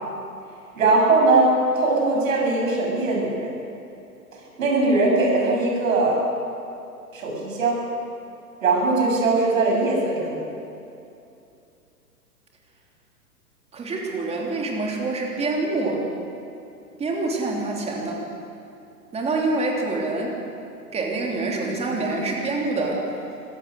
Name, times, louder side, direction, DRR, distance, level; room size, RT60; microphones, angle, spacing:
voice 1, 0.7-3.5 4.6-6.2 7.1-7.8 8.6-10.4, right 2 dB, 55° right, -1 dB, 7.5 m, -20 dB
voice 2, 13.7-16.0 17.0-18.2 19.1-20.4 20.9-23.0, right 3 dB, 15° right, -1 dB, 3.3 m, -26 dB
27.0 x 16.5 x 6.6 m, 2.6 s
figure-of-eight pair, 110°, 47 cm